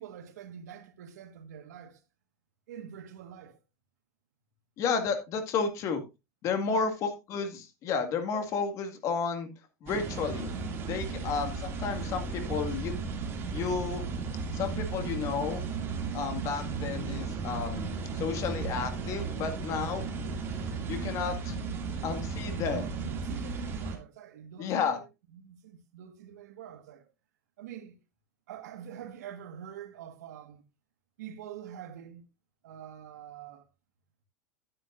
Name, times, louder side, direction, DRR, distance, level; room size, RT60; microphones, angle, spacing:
voice 1, 0.0-2.0 2.7-3.6 6.7-6.9 22.5-27.1 27.6-28.0 28.5-30.6 31.2-32.3 32.6-33.7, right 9 dB, 90° right, 1.7 m, -46 dB
voice 2, 4.8-6.0 6.4-9.5 9.8-10.5 10.9-12.9 13.5-14.0 14.5-15.7 16.1-20.1 20.9-21.6 22.0-22.9 24.6-25.0, left 5 dB, 35° left, 2.1 m, -32 dB
sound 1, 9.8-24.0, right 5 dB, 25° right, 2.6 m, -35 dB
12.0 x 9.7 x 2.6 m
supercardioid pair, 150°, 9 cm